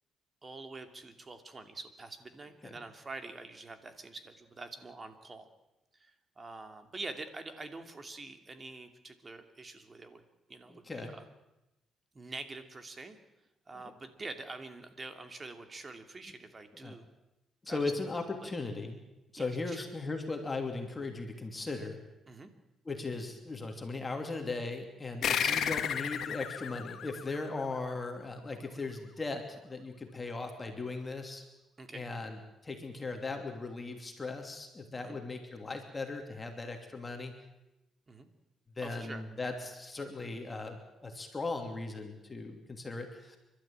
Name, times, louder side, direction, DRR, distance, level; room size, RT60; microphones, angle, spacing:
voice 1, 0.4-5.5 5.9-10.2 10.5-11.3 12.1-13.2 13.7-17.1 17.7-17.8 18.4-18.5 19.4-19.9 22.3-22.5 25.2-25.9 31.8-32.1 35.0-35.2 38.1-38.3 38.8-39.2, right 3 dB, 30° right, 7 dB, 2.6 m, -46 dB
voice 2, 10.7-11.2 13.7-13.9 16.7-16.9 17.6-19.0 19.3-22.0 22.8-31.4 31.9-37.3 38.8-43.4, left 3 dB, 25° left, 3 dB, 2.9 m, -38 dB
sound 1, 25.2-28.2, left 8 dB, 65° left, 1.6 m, -33 dB
29.0 x 12.5 x 8.9 m, 0.97 s
cardioid pair, 90°, 0 cm